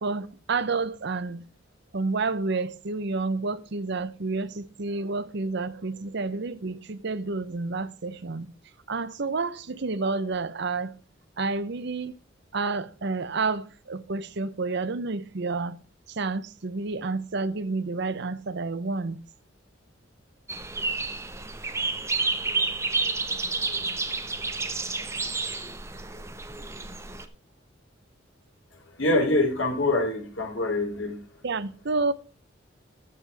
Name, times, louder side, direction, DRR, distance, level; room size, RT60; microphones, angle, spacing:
voice 1, 0.0-1.4 1.9-8.5 8.9-10.9 11.4-12.2 12.5-15.8 16.2-19.2 31.4-32.1, right 3 dB, 60° right, 0.8 m, -29 dB
sound 1, 20.5-27.3, right 3 dB, 15° right, 0.9 m, -30 dB
voice 2, 29.0-31.2, left 2 dB, 85° left, 3.0 m, -25 dB
13.0 x 7.5 x 3.4 m
head